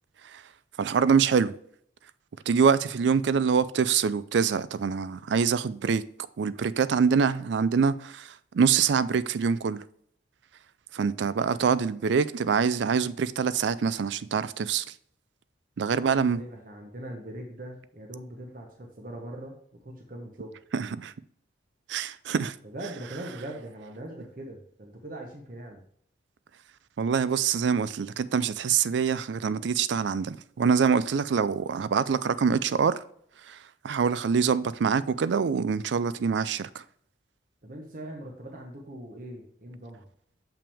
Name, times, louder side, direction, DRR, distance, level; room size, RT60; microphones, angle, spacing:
voice 1, 0.8-1.5 2.5-6.0 6.4-8.3 8.5-9.8 10.9-14.8 15.8-16.4 20.7-21.1 21.9-22.5 27.0-33.0 33.5-33.6 33.8-36.8, right 6 dB, 70° right, 0.4 m, -25 dB
voice 2, 16.0-19.5 19.8-20.6 22.6-25.8 37.6-40.0, right 1 dB, 45° right, 1.0 m, -41 dB
7.0 x 5.8 x 3.4 m
head